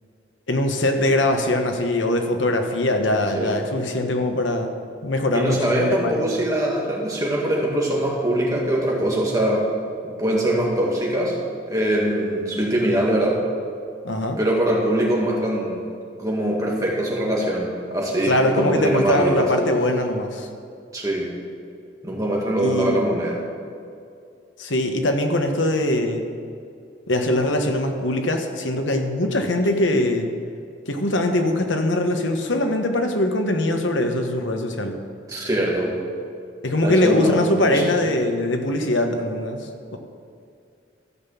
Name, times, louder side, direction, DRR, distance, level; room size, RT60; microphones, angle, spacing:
voice 1, 0.5-4.7 5.0-6.3 14.0-14.4 18.2-20.5 22.6-23.1 24.6-26.2 27.1-30.3 30.9-35.0 36.6-40.0, left 1 dB, 85° left, 5 dB, 1.2 m, -22 dB
voice 2, 5.3-9.7 10.2-11.4 11.7-13.4 14.4-15.8 16.2-19.5 20.9-21.3 22.0-23.4 35.3-36.0 36.8-37.8, right 1 dB, 20° right, -3 dB, 1.9 m, -22 dB
13.5 x 6.0 x 7.2 m, 2.4 s
head